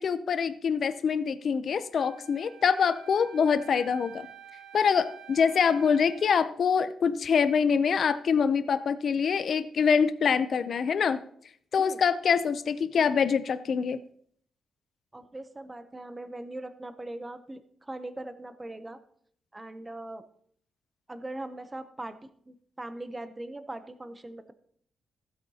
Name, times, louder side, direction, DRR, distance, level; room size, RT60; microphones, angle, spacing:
voice 1, 0.0-4.3 4.7-11.2 11.7-14.0, left 6 dB, 40° left, 12 dB, 0.4 m, -25 dB
Wind instrument woodwind instrument, 2.0-6.4, right 9 dB, 80° right, 1.9 m, -49 dB
voice 2, 15.1-19.0 19.5-20.3 21.1-24.5, right 1 dB, 10° right, 11 dB, 0.6 m, -40 dB
15.5 x 8.3 x 2.8 m, 0.63 s
wide cardioid pair, 175°, 0 cm